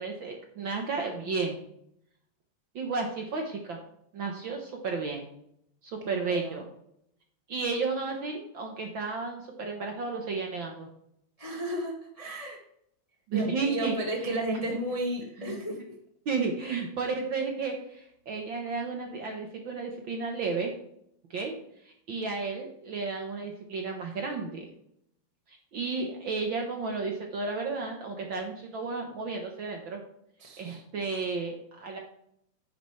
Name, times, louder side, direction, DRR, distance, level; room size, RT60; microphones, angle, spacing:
voice 1, 0.0-1.6 2.7-3.8 4.1-5.3 5.8-6.6 7.5-10.9 13.3-13.9 14.3-14.4 14.7-14.8 15.4-15.6 16.2-20.7 21.3-21.6 21.8-24.7 25.5-30.0 30.6-32.0, right 4 dB, 60° right, 2 dB, 1.4 m, -33 dB
voice 2, 6.0-6.6 11.4-12.6 13.3-15.8 30.4-30.8, equal, 35° left, -1 dB, 0.5 m, -33 dB
9.8 x 9.6 x 3.3 m, 0.73 s
omnidirectional pair, 3.4 m